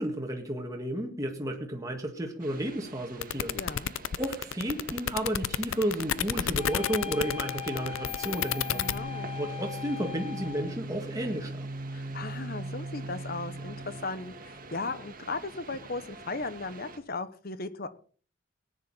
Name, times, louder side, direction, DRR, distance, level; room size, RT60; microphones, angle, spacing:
voice 1, 0.0-3.6 4.2-8.8 9.4-11.7, right 1 dB, 15° right, 1 dB, 1.8 m, -32 dB
sound 1, 2.4-17.0, right 2 dB, 45° right, 1.8 m, -42 dB
sound 2, 3.2-9.0, left 9 dB, 85° left, 0.5 m, -30 dB
voice 2, 3.5-3.9 8.7-9.3 11.9-17.9, left 3 dB, 50° left, 13 dB, 1.1 m, -37 dB
sound 3, 6.6-10.8, left 12 dB, 30° left, 1.8 m, -40 dB
18.0 x 9.8 x 4.1 m, 0.42 s
head